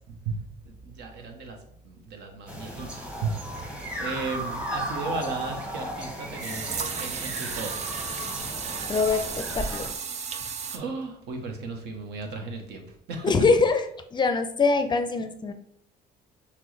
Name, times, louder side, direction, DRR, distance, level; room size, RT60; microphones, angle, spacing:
voice 1, 0.7-1.6 1.8-3.7 4.0-6.7 6.9-7.7 8.4-8.5 10.7-13.3, right 4 dB, 80° right, 3 dB, 0.9 m, -35 dB
sound 1, 2.5-9.9, equal, 5° right, 0.8 m, -35 dB
sound 2, 6.4-10.8, right 6 dB, 40° right, 0.4 m, -34 dB
voice 2, 8.9-9.9 13.2-13.9 14.1-15.5, left 4 dB, 25° left, 8 dB, 0.4 m, -23 dB
5.9 x 2.2 x 3.2 m, 0.69 s
cardioid pair, 110°, 17 cm